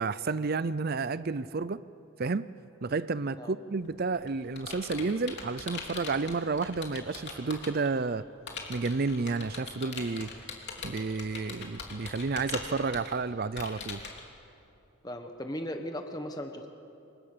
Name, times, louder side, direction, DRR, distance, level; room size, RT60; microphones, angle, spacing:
voice 1, 0.0-1.8 2.2-2.5 2.8-8.2 8.7-10.3 10.8-14.1, right 4 dB, 45° right, 16 dB, 0.5 m, -31 dB
Computer keyboard, 3.8-7.9 8.5-14.2, left 5 dB, 50° left, 3.3 m, -41 dB
voice 2, 15.0-16.7, equal, 15° left, 5 dB, 1.3 m, -37 dB
28.5 x 25.0 x 6.8 m, 2.8 s
head